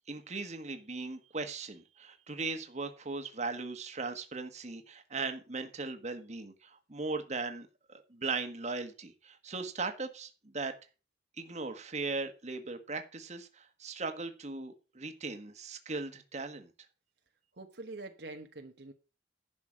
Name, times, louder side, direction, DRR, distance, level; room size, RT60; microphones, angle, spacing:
voice 1, 0.1-10.7 11.4-16.7, right 3 dB, 40° right, 1.5 m, -38 dB
voice 2, 17.6-18.9, right 2 dB, 65° right, 1.2 m, -45 dB
11.0 x 6.2 x 6.3 m
head